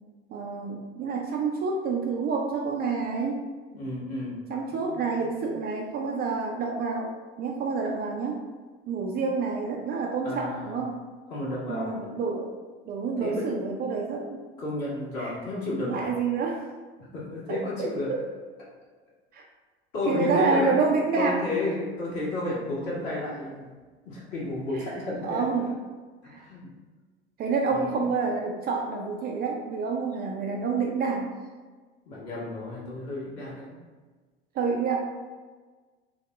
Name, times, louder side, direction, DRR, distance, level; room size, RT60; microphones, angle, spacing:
voice 1, 0.3-3.4 4.5-8.4 8.9-11.0 11.7-12.6 12.9-14.4 15.2-15.3 15.9-16.6 17.5-18.2 19.3-19.4 20.1-21.4 24.7-25.7 26.3-26.4 27.4-31.3 34.5-35.0, right 4 dB, 30° right, 1 dB, 0.4 m, -28 dB
voice 2, 3.7-5.4 10.2-10.8 11.3-12.0 13.2-13.6 14.6-16.1 17.0-18.1 19.9-20.8 21.2-23.7 24.0-25.4 26.3-26.7 27.7-28.1 32.0-33.8, left 2 dB, 50° left, -6 dB, 1.5 m, -32 dB
3.9 x 2.1 x 3.6 m, 1.4 s
figure-of-eight pair, 75°, 32 cm